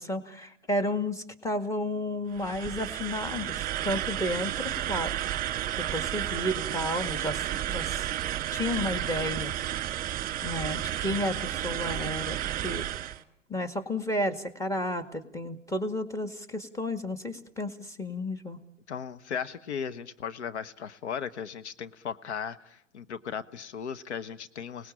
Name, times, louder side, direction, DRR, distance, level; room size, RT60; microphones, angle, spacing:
voice 1, 0.0-5.2 5.8-8.0 8.5-9.5 10.4-12.9 13.5-18.6, left 1 dB, 10° left, 7 dB, 2.0 m, -32 dB
sound 1, 2.3-13.2, right 12 dB, 25° right, 1.8 m, -32 dB
voice 2, 18.9-24.9, left 7 dB, 65° left, 11 dB, 1.2 m, -36 dB
30.0 x 19.5 x 8.8 m, 0.81 s
figure-of-eight pair, 105°, 36 cm